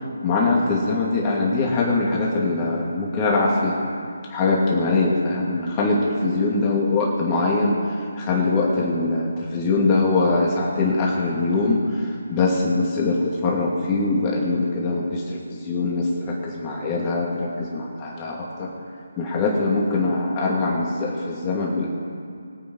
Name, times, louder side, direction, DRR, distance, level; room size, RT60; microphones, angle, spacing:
voice 1, 0.2-3.8 4.3-7.8 8.2-18.7 19.2-21.9, left 3 dB, 25° left, -4 dB, 2.6 m, -22 dB
22.0 x 8.8 x 4.7 m, 2.4 s
figure-of-eight pair, 155°, 0 cm